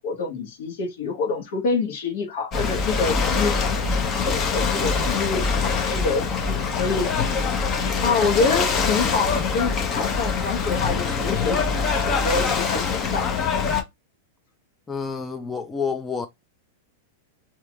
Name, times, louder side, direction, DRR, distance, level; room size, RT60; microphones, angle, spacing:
voice 1, 0.0-3.8 4.2-7.2 8.0-13.4, left 4 dB, 65° left, 1.4 m, -27 dB
Ocean / Boat Water vehicle, 2.5-13.8, left 5 dB, 35° left, 1.0 m, -24 dB
voice 2, 14.9-16.3, left 5 dB, 15° left, 0.5 m, -28 dB
4.3 x 2.9 x 2.4 m
hypercardioid pair, 110°, 0 cm